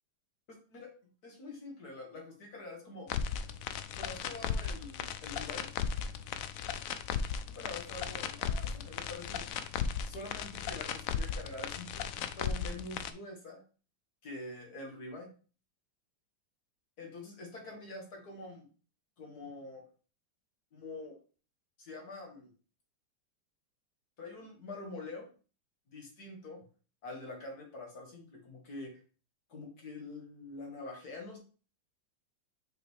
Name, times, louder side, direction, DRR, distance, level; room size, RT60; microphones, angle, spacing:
voice 1, 0.5-0.9 1.2-3.1 4.0-5.7 7.6-9.5 10.0-13.6 14.2-15.3 17.0-18.7 19.2-19.8 20.7-21.2 21.8-22.5 24.2-25.3 25.9-26.6 27.0-29.0 29.5-31.4, left 2 dB, 55° left, 1 dB, 2.1 m, -45 dB
sound 1, 3.1-13.1, left 7 dB, 80° left, 0.7 m, -36 dB
5.8 x 5.2 x 3.2 m, 0.38 s
omnidirectional pair, 2.0 m